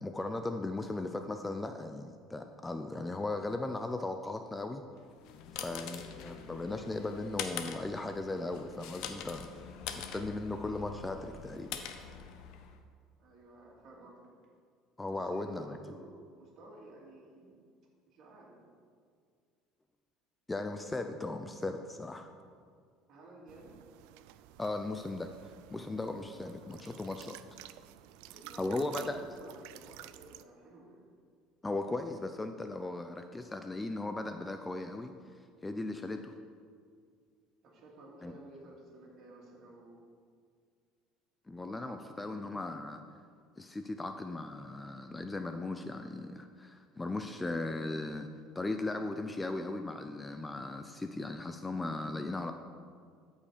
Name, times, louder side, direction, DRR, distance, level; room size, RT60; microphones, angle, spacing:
voice 1, 0.0-4.8 5.6-11.7 15.0-15.8 20.5-22.3 24.6-27.4 28.6-29.2 31.6-35.1 35.6-36.3 38.2-38.3 41.5-43.0 43.6-48.3 48.5-52.5, left 2 dB, 10° left, 7 dB, 0.4 m, -37 dB
sound 1, 5.1-12.8, left 8 dB, 65° left, 0.8 m, -44 dB
voice 2, 13.2-14.3 15.1-17.5 18.1-18.6 23.1-23.8 28.2-31.0 37.6-40.1 41.6-42.4, right 2 dB, 50° right, -3 dB, 2.8 m, -53 dB
sound 2, 23.5-30.5, right 14 dB, 80° right, 0.3 m, -52 dB
13.5 x 5.4 x 5.0 m, 2.1 s
cardioid pair, 135°, 0 cm